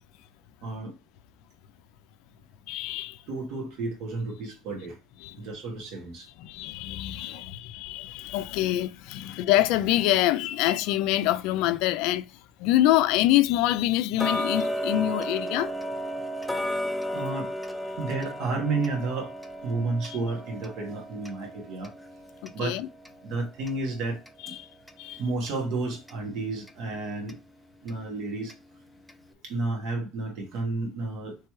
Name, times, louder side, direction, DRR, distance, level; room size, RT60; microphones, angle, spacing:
voice 1, 0.6-0.9 3.3-5.0 5.3-6.3 7.3-7.4 17.1-17.5 18.0-19.3 19.6-21.9 22.5-22.8 23.2-24.6 25.2-27.4 27.8-28.5 29.3-31.4, right 3 dB, 70° right, 1.4 m, -31 dB
voice 2, 2.7-3.2 5.2-5.4 6.4-12.2 12.6-15.7 22.4-22.9 24.4-24.7 25.0-25.2, left 14 dB, 85° left, 0.3 m, -25 dB
Tick-tock, 14.2-25.0 25.4-25.5 26.1-26.2 26.7-26.8 27.3-27.4 27.9-28.0 28.5-28.6 29.1-29.2, equal, 5° left, 0.4 m, -34 dB
3.2 x 3.1 x 4.5 m
cardioid pair, 150°, 0 cm